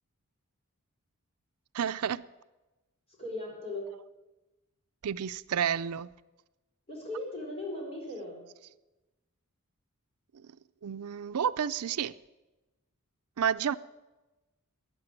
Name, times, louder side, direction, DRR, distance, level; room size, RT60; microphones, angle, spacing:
voice 1, 1.7-2.2 5.0-6.1 10.8-12.1 13.4-13.8, right 8 dB, 90° right, 0.5 m, -30 dB
voice 2, 3.2-3.9 6.9-8.4, left 1 dB, 25° left, 4.3 m, -38 dB
14.0 x 9.6 x 8.8 m
head